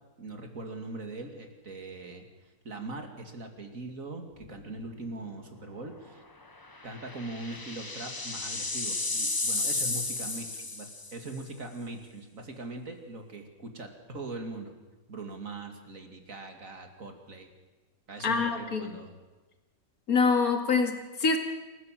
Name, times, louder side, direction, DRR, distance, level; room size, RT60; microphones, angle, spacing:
voice 1, 0.2-2.2 2.6-6.2 6.8-14.7 15.1-17.5 18.1-19.1, right 2 dB, 45° right, 5 dB, 2.9 m, -41 dB
sound 1, 4.4-4.8 5.1-5.2 6.6-11.3, left 2 dB, 20° left, 0.6 m, -33 dB
voice 2, 18.2-19.0 20.1-21.4, left 4 dB, 50° left, 5 dB, 2.6 m, -25 dB
27.5 x 15.0 x 7.7 m, 1.2 s
omnidirectional pair, 1.9 m